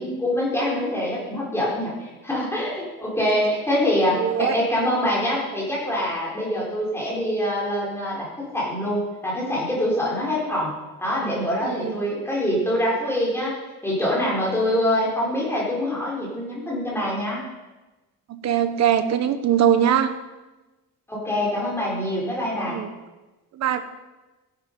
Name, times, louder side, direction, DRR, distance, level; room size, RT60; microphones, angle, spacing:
voice 1, 0.0-8.3 8.5-10.7 11.0-13.5 13.8-17.4 21.1-22.8, left 1 dB, 5° left, -5 dB, 4.3 m, -24 dB
voice 2, 4.1-4.6 11.6-12.0 18.3-20.1 22.6-22.9 23.5-23.8, right 9 dB, 45° right, 10 dB, 1.0 m, -21 dB
13.5 x 11.0 x 5.3 m, 1.1 s
cardioid pair, 180°, 36 cm